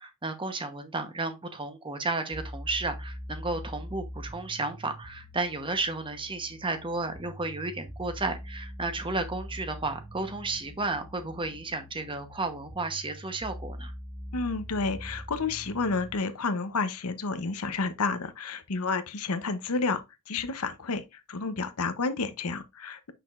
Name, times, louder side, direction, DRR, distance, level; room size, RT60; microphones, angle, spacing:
voice 1, 0.0-13.9, right 3 dB, 25° right, 1.0 m, -33 dB
sound 1, 2.3-16.2, equal, 75° right, 3.2 m, -43 dB
voice 2, 14.3-23.1, left 4 dB, 75° left, 0.8 m, -30 dB
6.6 x 5.9 x 2.5 m
head